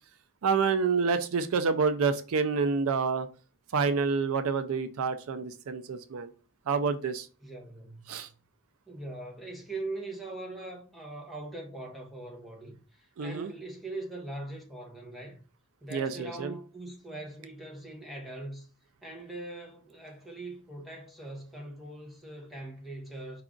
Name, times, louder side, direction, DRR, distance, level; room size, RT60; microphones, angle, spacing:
voice 1, 0.4-3.3 3.7-6.3 6.7-7.3 8.1-8.3 13.2-13.5 15.9-16.5, right 5 dB, 70° right, 0.4 m, -28 dB
voice 2, 7.4-8.3 8.9-15.4 15.8-18.7 19.0-23.4, right 2 dB, ahead, 0.9 m, -41 dB
4.7 x 2.4 x 3.7 m
head